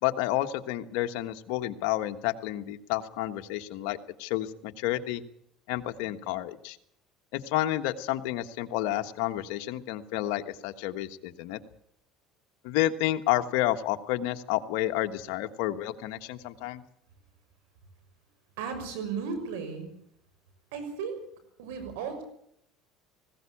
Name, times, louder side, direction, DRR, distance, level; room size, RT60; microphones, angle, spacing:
voice 1, 0.0-5.2 5.7-6.8 7.3-11.6 12.6-16.8, left 14 dB, 80° left, 7 dB, 1.3 m, -30 dB
voice 2, 18.6-19.9 20.7-21.2 21.6-22.2, right 6 dB, 85° right, 8 dB, 6.3 m, -35 dB
19.5 x 16.5 x 8.6 m, 0.72 s
supercardioid pair, 110°, 0 cm